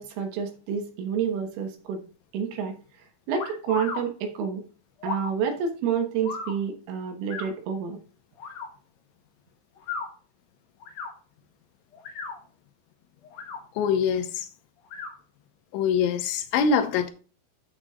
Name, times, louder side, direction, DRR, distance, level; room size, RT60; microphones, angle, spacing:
voice 1, 0.0-2.0 2.3-2.7 3.3-4.6 5.0-8.0, right 7 dB, 80° right, 3.7 m, -29 dB
sound 1, 3.4-4.0 5.0-5.3 6.2-6.5 7.3-7.5 8.4-8.7 9.8-10.1 10.8-11.1 11.9-12.4 13.2-13.6 14.9-15.1, left 5 dB, 65° left, 2.1 m, -35 dB
voice 2, 13.8-14.5 15.7-17.1, left 6 dB, 80° left, 2.9 m, -24 dB
8.9 x 8.2 x 2.4 m
omnidirectional pair, 5.9 m